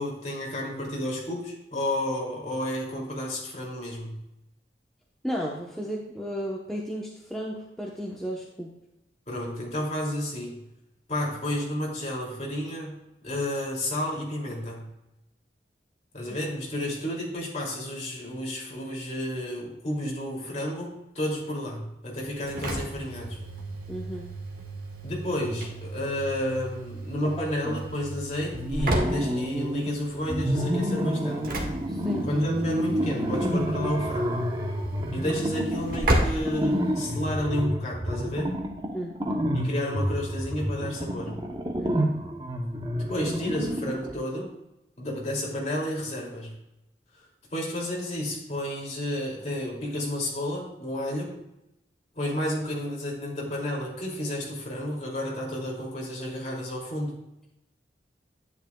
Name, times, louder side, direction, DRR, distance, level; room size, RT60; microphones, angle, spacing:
voice 1, 0.0-4.2 9.3-10.7 11.1-14.9 16.1-23.4 25.0-31.6 32.2-34.5 35.1-38.6 39.5-41.5 43.1-44.6 45.0-46.6 47.1-47.2 47.5-51.4 52.1-57.2, left 1 dB, 40° left, -3 dB, 2.7 m, -31 dB
voice 2, 5.2-8.7 23.9-24.3 27.6-27.8 31.9-32.3 38.9-39.2 41.8-42.2, equal, ahead, -3 dB, 0.9 m, -34 dB
Engine / Slam, 22.2-37.4, right 1 dB, 55° right, 1.7 m, -34 dB
sound 1, 28.5-29.9 30.3-44.2, equal, 25° right, 0.8 m, -29 dB
10.5 x 9.3 x 2.3 m, 0.89 s
head